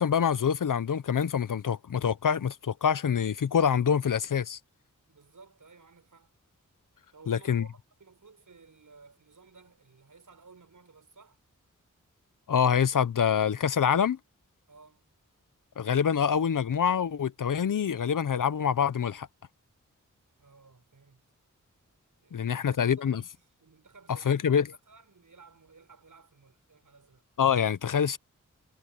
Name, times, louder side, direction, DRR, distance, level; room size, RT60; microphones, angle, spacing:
voice 1, 0.0-4.6 7.3-7.6 12.5-14.2 15.8-19.3 22.3-23.2 24.3-24.6 27.4-28.2, left 7 dB, 75° left, 0.8 m, -25 dB
voice 2, 5.1-6.3 7.1-11.4 14.7-15.1 20.4-21.2 22.2-27.2, right 4 dB, 70° right, 7.2 m, -56 dB
wide cardioid pair, 100°, 32 cm